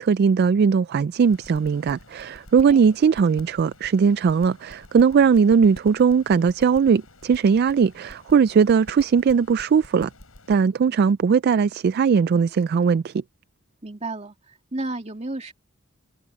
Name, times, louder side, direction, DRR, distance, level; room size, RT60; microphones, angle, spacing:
voice 1, 0.0-10.1 10.5-13.1, right 6 dB, 50° right, 0.3 m, -19 dB
sound 1, 1.2-10.6, left 1 dB, 80° left, 6.8 m, -47 dB
voice 2, 13.8-15.5, right 2 dB, 30° right, 2.6 m, -32 dB
head